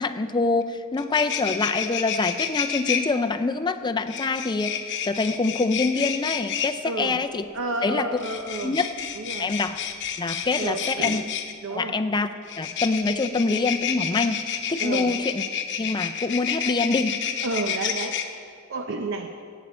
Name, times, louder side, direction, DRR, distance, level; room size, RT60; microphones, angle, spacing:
voice 1, 0.0-7.5 7.8-8.1 8.6-8.9 9.4-9.8 10.2-11.2 11.7-12.3 12.6-15.4 15.8-17.2, left 3 dB, 20° left, 8 dB, 0.4 m, -25 dB
sound 1, 0.6-0.7 0.9-3.0 4.1-6.7 8.1-11.5 12.5-18.2, left 8 dB, 55° left, 0.8 m, -29 dB
voice 2, 6.8-7.2 7.5-8.8 9.2-9.5 10.6-11.3 11.6-12.0 14.8-15.1 17.4-19.4, right 2 dB, 60° right, 5 dB, 0.6 m, -31 dB
18.0 x 8.1 x 4.3 m, 2.2 s
head